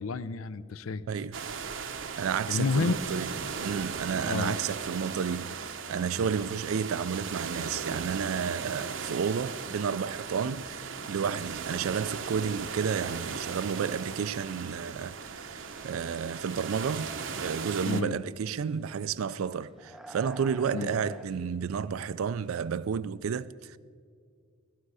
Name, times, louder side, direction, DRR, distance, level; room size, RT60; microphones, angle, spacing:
voice 1, 0.0-1.1 2.5-3.0 4.3-4.5 17.9-18.2 20.7-20.9, left 4 dB, 85° left, 0.6 m, -30 dB
sound 1, 1.3-18.0, right 6 dB, 65° right, 0.7 m, -37 dB
voice 2, 2.2-3.3 3.6-17.1 17.4-23.8, right 6 dB, 85° right, 0.4 m, -31 dB
sound 2, 2.7-22.2, left 1 dB, 60° left, 0.8 m, -56 dB
sound 3, 15.4-16.2 16.5-18.1 18.6-19.0 19.3-22.1 22.4-22.9, right 1 dB, ahead, 0.4 m, -52 dB
19.0 x 13.0 x 4.8 m
head